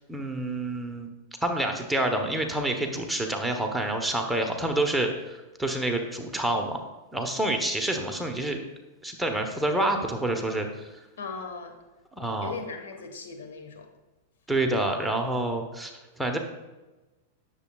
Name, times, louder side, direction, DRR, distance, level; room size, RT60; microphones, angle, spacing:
voice 1, 0.1-1.1 1.4-6.8 7.1-8.6 9.0-10.9 12.2-12.6 14.5-16.4, right 1 dB, 5° right, 2 dB, 1.0 m, -28 dB
voice 2, 11.2-11.7 12.4-13.9, left 4 dB, 75° left, 4 dB, 1.4 m, -38 dB
10.0 x 6.9 x 2.3 m, 1.1 s
hypercardioid pair, 110°, 0 cm